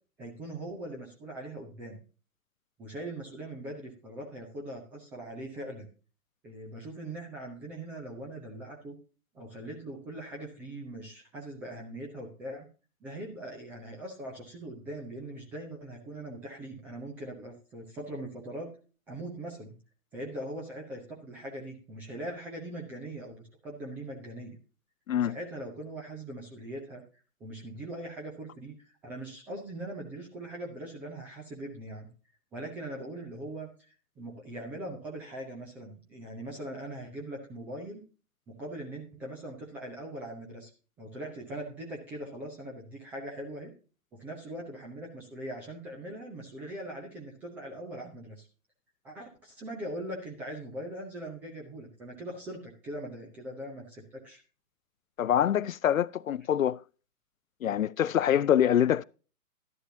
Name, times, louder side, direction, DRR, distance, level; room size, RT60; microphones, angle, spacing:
voice 1, 0.2-2.0 2.8-5.9 6.4-9.0 9.3-12.7 13.0-18.7 19.1-19.8 20.1-24.6 25.2-27.0 27.4-32.1 32.5-33.7 34.2-38.0 38.5-40.7 41.0-43.7 44.1-48.5 49.0-54.4, right 1 dB, 5° right, 0.4 m, -41 dB
voice 2, 55.2-56.8 57.6-59.0, left 10 dB, 65° left, 0.5 m, -25 dB
12.0 x 11.0 x 2.7 m
figure-of-eight pair, 120°, 45 cm